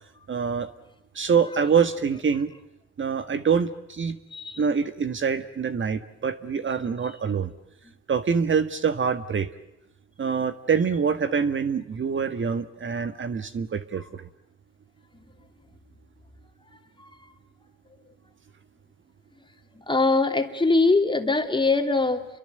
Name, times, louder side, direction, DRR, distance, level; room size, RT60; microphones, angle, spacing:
voice 1, 0.3-0.7 1.1-2.5 3.0-4.2 4.6-7.5 8.1-9.5 10.2-14.3, right 6 dB, 40° right, 10 dB, 1.5 m, -25 dB
voice 2, 4.3-4.6 7.8-7.9 15.1-15.3 17.0-17.1 19.7-22.3, left 3 dB, 15° left, 5 dB, 3.1 m, -22 dB
30.0 x 23.5 x 7.8 m, 0.88 s
cardioid pair, 90°, 30 cm